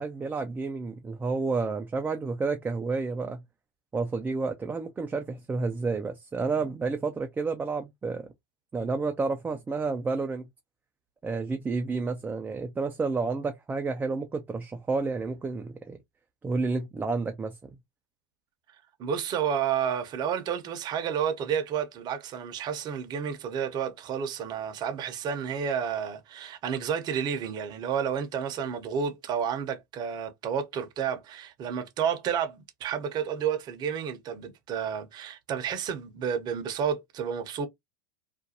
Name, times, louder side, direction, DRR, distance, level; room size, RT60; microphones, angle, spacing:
voice 1, 0.0-3.4 3.9-8.3 8.7-10.5 11.2-16.0 16.4-17.5, right 4 dB, 15° right, 0.4 m, -30 dB
voice 2, 19.0-37.7, right 8 dB, 40° right, 0.7 m, -31 dB
2.5 x 2.2 x 2.7 m
hypercardioid pair, 95°, 11 cm